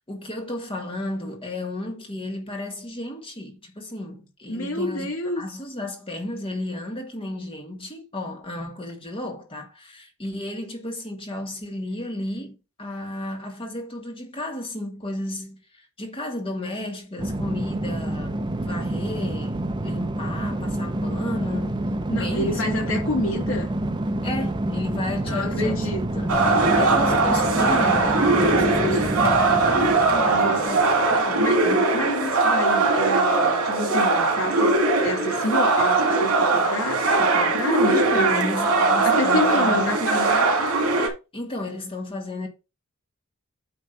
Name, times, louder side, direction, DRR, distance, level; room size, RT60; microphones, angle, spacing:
voice 1, 0.1-5.1 5.3-21.8 22.1-22.6 24.2-30.8 31.1-31.9 37.9-40.1 41.3-42.5, left 1 dB, 25° left, 1.8 m, -33 dB
voice 2, 4.5-5.4 22.1-23.7 25.3-26.3 30.3-30.7 31.3-31.6 31.9-38.5 39.0-40.5, left 1 dB, 65° left, 2.3 m, -28 dB
sound 1, 17.2-31.6, right 1 dB, 20° right, 0.6 m, -28 dB
sound 2, 26.3-41.1, right 3 dB, 80° right, 2.7 m, -20 dB
9.0 x 3.2 x 5.6 m
head